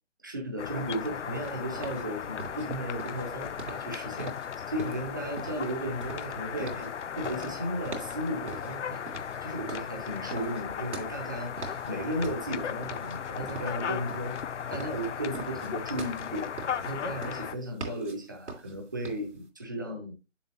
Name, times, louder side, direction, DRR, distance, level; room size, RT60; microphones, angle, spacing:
voice 1, 0.2-4.3 4.7-9.0 9.4-14.4 14.7-16.5 16.8-20.1, right 1 dB, 15° right, 1 dB, 0.9 m, -35 dB
sound 1, 0.6-17.5, left 8 dB, 65° left, 0.6 m, -36 dB
sound 2, 1.2-19.5, right 3 dB, 65° right, 3.0 m, -44 dB
7.2 x 7.1 x 2.9 m, 0.27 s
hypercardioid pair, 180°, 37 cm